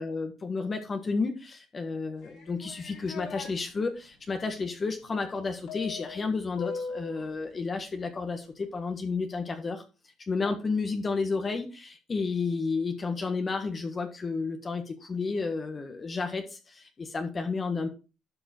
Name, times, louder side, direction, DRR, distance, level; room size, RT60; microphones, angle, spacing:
voice 1, 0.0-9.8 10.3-17.9, left 4 dB, 30° left, 5 dB, 1.5 m, -31 dB
sound 1, 2.2-3.5 5.7-7.3, left 5 dB, 65° left, 4.5 m, -39 dB
12.0 x 5.4 x 4.5 m, 0.32 s
cardioid pair, 110°, 0 cm